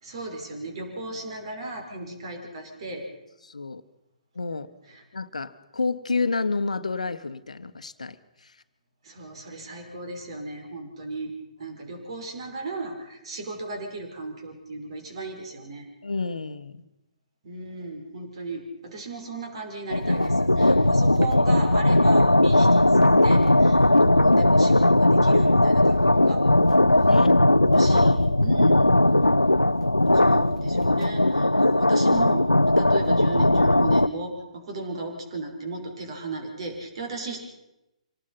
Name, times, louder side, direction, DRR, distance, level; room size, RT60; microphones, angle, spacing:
voice 1, 0.0-3.1 4.9-5.0 9.0-11.3 11.6-15.9 17.4-26.4 27.7-28.9 30.1-37.4, right 2 dB, 45° right, 3 dB, 5.6 m, -36 dB
voice 2, 3.4-3.8 4.3-4.7 5.1-8.2 8.4-8.5 11.6-11.8 16.0-16.8 20.9-21.2 27.0-27.3, left 4 dB, 70° left, 13 dB, 1.1 m, -29 dB
sound 1, 19.9-34.1, left 1 dB, 85° left, 0.6 m, -18 dB
26.0 x 19.0 x 5.6 m, 0.93 s
figure-of-eight pair, 130°, 4 cm